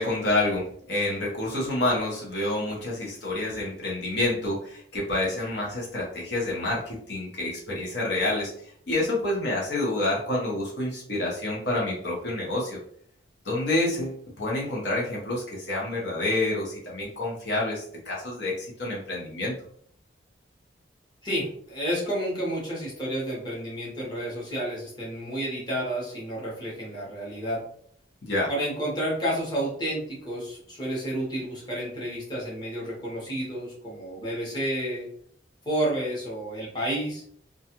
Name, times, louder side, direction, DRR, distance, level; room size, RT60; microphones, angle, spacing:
voice 1, 0.0-8.5 8.9-12.8 13.4-19.5 28.2-28.5, left 2 dB, 70° left, -4 dB, 0.8 m, -28 dB
voice 2, 21.2-27.6 28.5-35.1 35.6-37.2, right 1 dB, 25° left, -6 dB, 0.9 m, -30 dB
2.4 x 2.3 x 2.8 m, 0.62 s
head